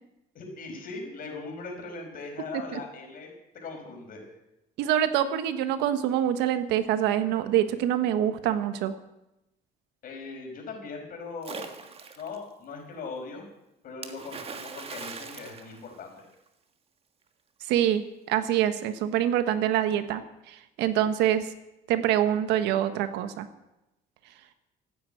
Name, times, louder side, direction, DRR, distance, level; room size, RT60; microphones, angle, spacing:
voice 1, 0.3-4.2 10.0-13.4 13.8-16.2, left 4 dB, 55° left, 2 dB, 5.4 m, -40 dB
voice 2, 4.8-8.9 17.7-21.5 21.9-23.5, right 11 dB, 90° right, 11 dB, 1.3 m, -25 dB
Splash splatter, 11.4-12.4 14.0-16.5, right 5 dB, 35° right, 1.7 m, -41 dB
15.0 x 9.6 x 9.1 m, 0.92 s
cardioid pair, 110°, 17 cm